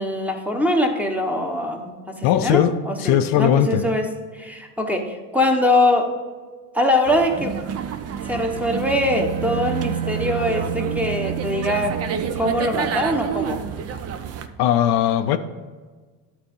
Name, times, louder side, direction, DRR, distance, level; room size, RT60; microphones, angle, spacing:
voice 1, 0.0-4.1 4.3-6.1 6.7-7.6 8.2-12.0 12.3-13.6, left 1 dB, 5° right, 2 dB, 1.1 m, -22 dB
voice 2, 2.2-3.8 14.6-15.4, left 11 dB, 65° left, 9 dB, 0.6 m, -19 dB
sound 1, 7.0-14.5, right 8 dB, 35° right, 0.7 m, -30 dB
Bowed string instrument, 8.2-13.0, right 8 dB, 85° right, 0.9 m, -30 dB
11.5 x 4.2 x 5.4 m, 1.4 s
supercardioid pair, 105°, 42 cm